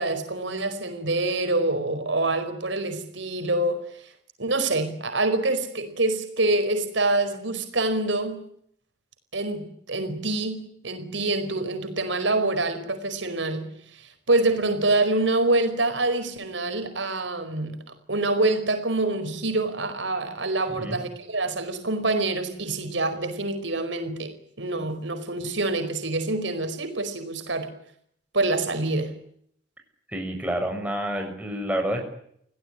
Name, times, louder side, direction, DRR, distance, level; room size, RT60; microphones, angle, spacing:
voice 1, 0.0-4.1 4.4-8.4 9.3-17.8 18.1-27.7 28.3-29.1, right 2 dB, 90° right, 7 dB, 4.8 m, -26 dB
voice 2, 20.7-21.0 30.1-32.0, right 1 dB, 10° right, 3 dB, 6.2 m, -28 dB
29.0 x 17.5 x 9.9 m, 0.69 s
head